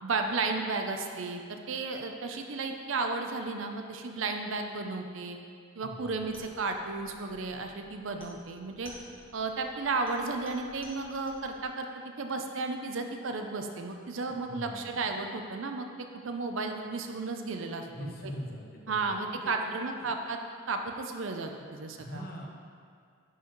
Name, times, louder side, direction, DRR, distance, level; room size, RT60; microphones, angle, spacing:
voice 1, 0.0-5.4 5.8-8.9 9.3-15.9 16.2-18.1 18.9-20.4 20.7-22.5, right 3 dB, 70° right, 5 dB, 0.6 m, -33 dB
voice 2, 5.8-6.3 14.3-15.1 17.9-20.1 22.0-22.5, equal, 45° left, -1 dB, 0.9 m, -43 dB
sound 1, 6.2-11.6, left 1 dB, 25° left, 1.2 m, -55 dB
11.0 x 4.8 x 3.1 m, 2.2 s
head